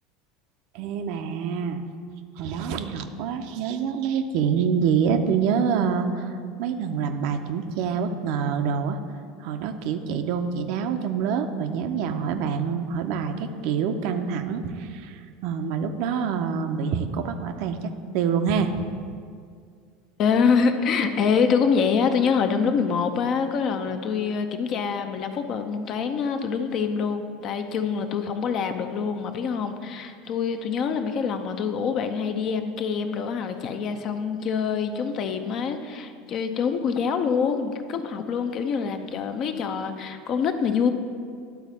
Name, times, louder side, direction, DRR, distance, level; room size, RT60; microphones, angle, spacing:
voice 1, 0.7-1.8 2.4-9.0 9.4-18.8, right 6 dB, 60° right, 7 dB, 0.5 m, -26 dB
voice 2, 20.2-40.9, left 6 dB, 50° left, 7 dB, 0.6 m, -25 dB
11.5 x 4.0 x 4.0 m, 2.2 s
hypercardioid pair, 75°, 0 cm